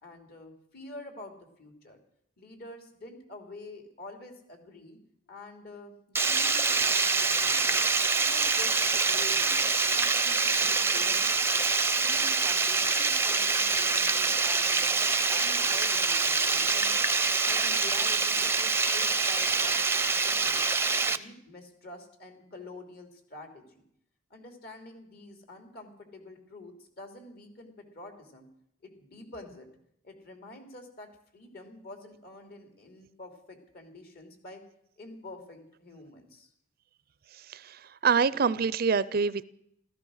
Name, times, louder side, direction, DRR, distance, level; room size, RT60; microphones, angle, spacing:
voice 1, 0.0-2.0 2.4-5.0 5.3-7.8 8.2-9.6 9.9-11.5 11.9-14.9 15.3-17.0 17.5-20.7 21.1-23.8 24.3-28.5 28.8-29.7 30.0-34.6 35.0-36.5, left 2 dB, 55° left, 5 dB, 3.1 m, -47 dB
Water, 6.2-21.2, right 4 dB, 15° right, 0.6 m, -25 dB
voice 2, 38.0-39.4, right 5 dB, 50° right, 18 dB, 0.5 m, -24 dB
15.5 x 14.0 x 6.4 m, 0.72 s
head